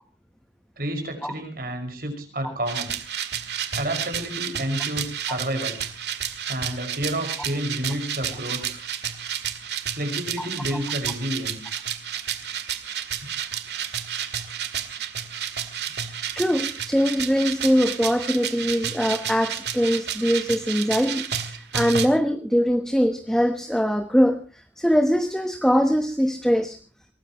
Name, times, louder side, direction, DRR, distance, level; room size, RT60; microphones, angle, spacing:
voice 1, 0.8-2.9 3.7-5.8 6.5-8.8 9.9-11.6, right 1 dB, 50° right, 5 dB, 5.8 m, -30 dB
sound 1, 2.7-22.1, right 9 dB, 70° right, 2.1 m, -31 dB
voice 2, 16.4-26.8, equal, 5° left, 7 dB, 1.0 m, -22 dB
23.5 x 19.0 x 3.1 m, 0.36 s
head